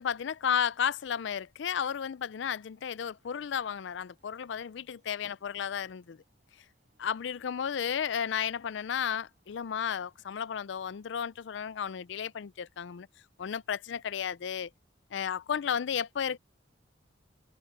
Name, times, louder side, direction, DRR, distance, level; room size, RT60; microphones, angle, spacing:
voice 1, 0.0-6.2 7.0-13.1 13.4-14.7 15.1-16.4, left 8 dB, 65° left, 0.4 m, -33 dB
sound 1, 2.9-10.4, right 1 dB, 40° right, 5.2 m, -75 dB
open air
head